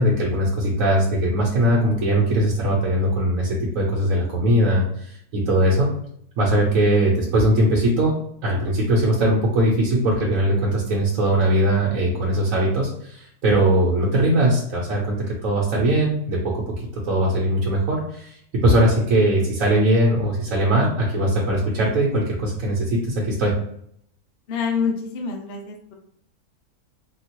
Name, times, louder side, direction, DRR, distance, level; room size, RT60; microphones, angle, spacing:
voice 1, 0.0-5.9 6.4-8.1 8.4-16.6 17.0-23.5, right 1 dB, 65° right, -4 dB, 1.1 m, -20 dB
voice 2, 24.5-25.9, left 6 dB, 65° left, 1 dB, 0.6 m, -26 dB
3.6 x 2.4 x 2.9 m, 0.69 s
omnidirectional pair, 1.6 m